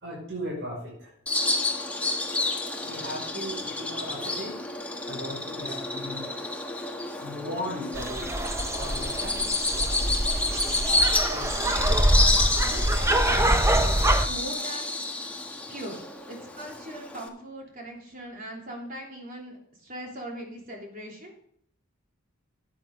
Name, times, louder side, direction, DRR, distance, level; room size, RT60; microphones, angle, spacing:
voice 1, 0.0-1.1 2.8-4.6 5.1-6.2 7.2-8.3 8.8-9.5 11.3-11.5, equal, 60° right, -3 dB, 5.4 m, -36 dB
Bird vocalization bird call bird song, 1.3-17.3, left 2 dB, 5° left, 1.2 m, -29 dB
sound 1, 7.9-14.3, right 1 dB, 15° right, 0.8 m, -24 dB
voice 2, 11.6-12.0 12.6-14.9 15.7-21.3, right 1 dB, 45° right, 0 dB, 3.4 m, -40 dB
12.0 x 8.9 x 3.7 m, 0.67 s
head